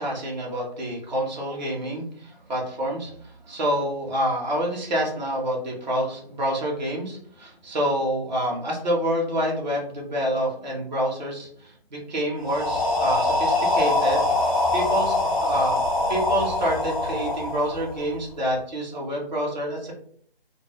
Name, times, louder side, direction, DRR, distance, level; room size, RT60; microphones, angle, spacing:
voice 1, 0.0-14.3 14.7-15.8 16.1-20.0, equal, 45° right, -3 dB, 0.6 m, -27 dB
sound 1, 12.4-18.3, left 2 dB, 35° left, 0.5 m, -24 dB
2.2 x 2.0 x 2.9 m, 0.62 s
figure-of-eight pair, 150°, 31 cm